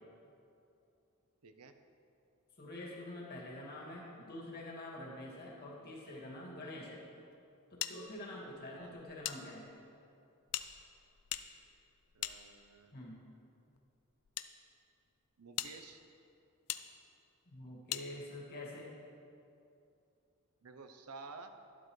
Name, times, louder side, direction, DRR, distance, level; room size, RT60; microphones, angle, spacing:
voice 1, 1.4-1.8 8.7-9.0 12.1-12.9 15.4-16.0 20.6-21.5, right 4 dB, 80° right, 8 dB, 0.7 m, -52 dB
voice 2, 2.6-7.0 7.7-9.7 12.9-13.2 17.5-18.9, left 1 dB, 45° left, -4 dB, 2.2 m, -46 dB
sound 1, 7.8-9.4 9.7-9.8 10.5-13.0 13.8-14.5 15.1-15.2 15.6-15.7 16.7-16.8 17.9-18.1, left 13 dB, 70° left, 0.5 m, -41 dB
12.0 x 11.5 x 3.2 m, 2.7 s
head